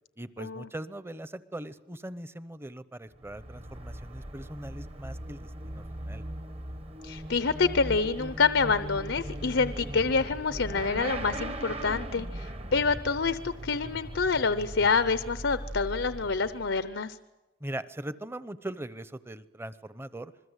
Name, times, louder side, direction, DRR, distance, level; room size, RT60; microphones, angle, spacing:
voice 1, 0.2-6.2 17.6-20.3, right 1 dB, 15° right, 14 dB, 0.8 m, -40 dB
Motorcycle / Accelerating revving vroom, 3.1-16.9, right 1 dB, 30° right, 1.1 m, -39 dB
voice 2, 7.0-17.2, left 4 dB, 80° left, 13 dB, 0.8 m, -27 dB
27.0 x 21.5 x 8.2 m, 1.1 s
head